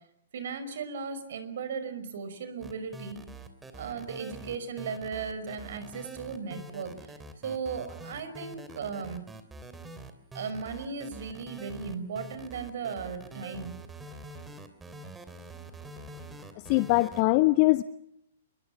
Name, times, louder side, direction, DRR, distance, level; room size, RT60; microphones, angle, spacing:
voice 1, 0.3-3.2 3.7-7.1 7.4-9.2 10.3-13.7, right 5 dB, 55° right, 11 dB, 5.6 m, -36 dB
sound 1, 2.6-17.2, right 2 dB, 10° right, 3.2 m, -45 dB
voice 2, 16.7-17.8, left 21 dB, 35° left, 14 dB, 0.9 m, -22 dB
28.5 x 23.5 x 7.1 m, 0.76 s
figure-of-eight pair, 115°, 0 cm